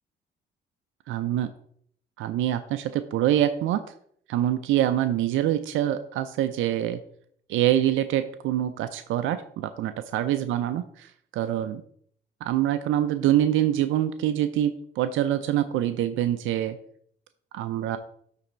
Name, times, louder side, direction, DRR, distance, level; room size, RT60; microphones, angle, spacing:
voice 1, 1.1-1.5 2.2-3.8 4.3-7.0 7.5-11.8 12.4-16.8 17.5-18.0, right 12 dB, 85° right, 10 dB, 0.5 m, -25 dB
9.1 x 3.4 x 4.3 m, 0.64 s
cardioid pair, 90°, 20 cm